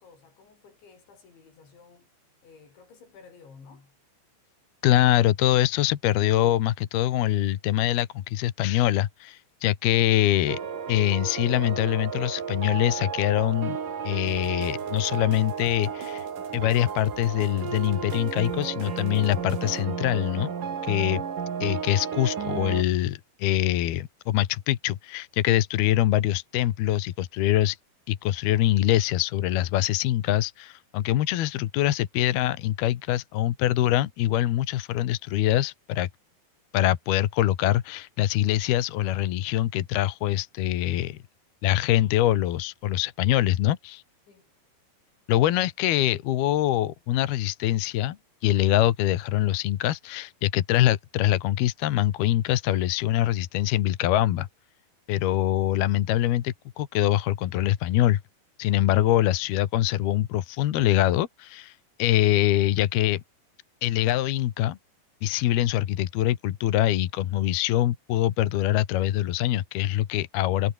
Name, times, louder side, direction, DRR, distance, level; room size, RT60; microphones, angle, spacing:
voice 1, 0.0-2.1 2.4-4.0 44.3-44.5 59.2-59.4, left 5 dB, 85° left, 9.2 m, -53 dB
voice 2, 4.8-10.6 10.9-13.8 14.0-16.3 16.5-20.5 20.8-21.2 21.6-27.8 28.1-36.1 36.7-41.2 41.6-44.0 45.3-48.2 48.4-54.5 55.1-58.2 58.6-63.2 63.8-64.8 65.2-70.7, left 13 dB, 70° left, 3.1 m, -24 dB
sound 1, 10.5-22.8, right 7 dB, 50° right, 4.5 m, -33 dB
sound 2, 14.3-19.8, right 7 dB, 75° right, 6.1 m, -48 dB
omnidirectional pair, 5.1 m